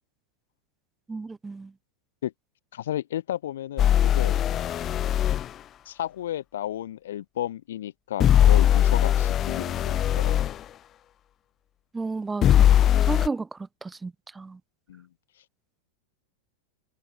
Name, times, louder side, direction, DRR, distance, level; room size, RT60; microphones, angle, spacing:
voice 1, 1.1-1.7 11.9-14.6, right 3 dB, 10° right, 1.6 m, -33 dB
voice 2, 2.7-4.4 5.8-10.6 13.1-13.3 14.9-15.1, left 12 dB, 60° left, 1.5 m, -33 dB
sound 1, 3.8-5.5 8.2-10.5 12.4-13.3, left 11 dB, 30° left, 1.2 m, -20 dB
figure-of-eight pair, 90°, 0 cm